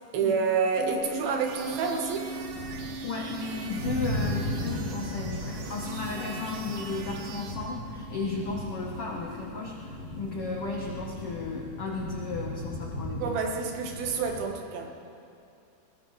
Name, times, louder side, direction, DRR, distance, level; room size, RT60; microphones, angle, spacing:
voice 1, 0.1-2.3 13.2-14.9, right 5 dB, 75° right, 2 dB, 3.1 m, -28 dB
sound 1, 0.8-14.2, right 4 dB, 55° right, 2.0 m, -43 dB
sound 2, 1.4-7.6, right 5 dB, 90° right, 3.2 m, -43 dB
sound 3, 1.8-14.4, left 1 dB, 45° left, 3.2 m, -37 dB
voice 2, 3.0-13.2, left 4 dB, 80° left, -2 dB, 1.3 m, -34 dB
20.0 x 18.5 x 3.2 m, 2.6 s
omnidirectional pair, 4.4 m